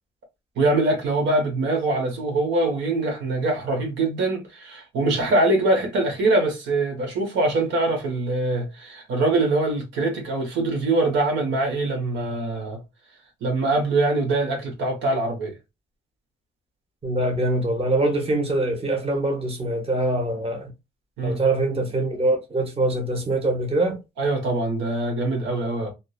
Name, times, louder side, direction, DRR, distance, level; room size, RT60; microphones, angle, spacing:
voice 1, 0.6-12.8 13.4-15.5 21.2-21.4 24.2-25.9, right 2 dB, 75° right, 1.0 m, -23 dB
voice 2, 17.0-20.7 21.2-24.0, right 2 dB, 30° right, 0.9 m, -23 dB
2.6 x 2.1 x 2.3 m
cardioid pair, 75°, 19 cm